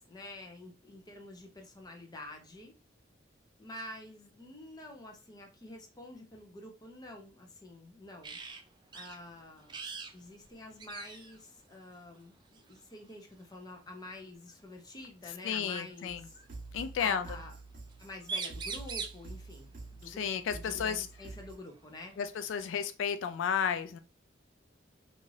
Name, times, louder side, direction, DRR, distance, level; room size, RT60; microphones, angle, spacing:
voice 1, 0.1-2.8 3.6-8.4 8.9-9.8 10.1-16.4 17.0-17.5 18.0-22.2, left 1 dB, 20° left, 2 dB, 0.7 m, -48 dB
sound 1, 8.2-8.6 8.9-9.2 9.7-10.1 10.4-10.5 10.8-11.4 12.5-12.8 14.5-14.6 15.7-16.5 17.9-18.0 18.2-19.2 21.2-21.3 21.7-22.7, right 5 dB, 25° right, 0.3 m, -41 dB
voice 2, 15.4-16.2 16.7-17.3 20.0-21.1 22.2-24.0, left 7 dB, 85° left, 9 dB, 0.3 m, -32 dB
sound 2, 16.0-21.5, right 3 dB, 50° right, 0.8 m, -47 dB
2.6 x 2.4 x 3.1 m, 0.32 s
head